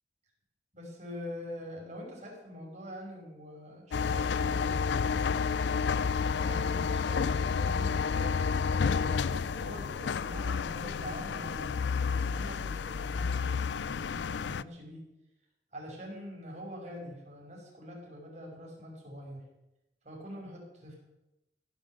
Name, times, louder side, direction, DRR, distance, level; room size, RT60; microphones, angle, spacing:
voice 1, 0.7-5.6 6.2-15.1 15.7-19.4 20.0-21.0, equal, 40° right, -1 dB, 5.8 m, -44 dB
sound 1, 3.9-14.6, left 5 dB, 80° left, 0.4 m, -30 dB
16.0 x 10.0 x 7.6 m, 0.93 s
head